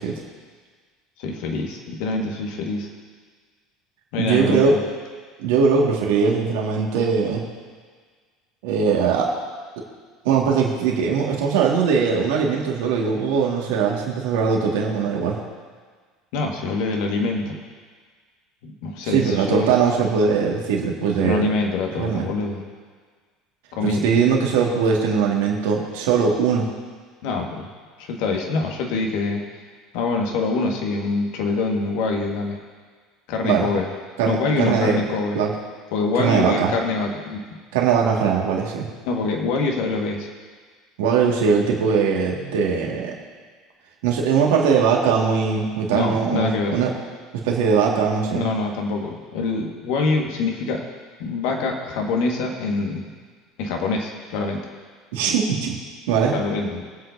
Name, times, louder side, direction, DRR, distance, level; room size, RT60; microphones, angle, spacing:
voice 1, 1.2-2.9 4.1-4.8 16.3-17.6 18.6-19.7 21.2-22.6 23.7-24.1 27.2-27.7 28.0-29.4 29.9-32.6 33.3-33.9 34.2-35.4 35.9-37.4 39.1-40.3 45.9-46.8 48.3-50.8 51.2-53.1 53.6-54.6 56.3-56.8, left 3 dB, 65° left, 1 dB, 1.7 m, -25 dB
voice 2, 4.2-4.8 5.4-7.4 8.6-9.3 10.2-15.4 19.0-21.4 22.0-22.3 23.8-26.7 33.4-33.7 34.2-35.0 35.3-35.5 36.2-36.7 37.7-38.9 41.0-43.1 44.0-46.9 47.3-48.5 55.1-55.8 56.1-56.3, right 6 dB, 70° right, -1 dB, 2.0 m, -20 dB
22.0 x 7.9 x 2.8 m, 1.6 s
hypercardioid pair, 70°, 0 cm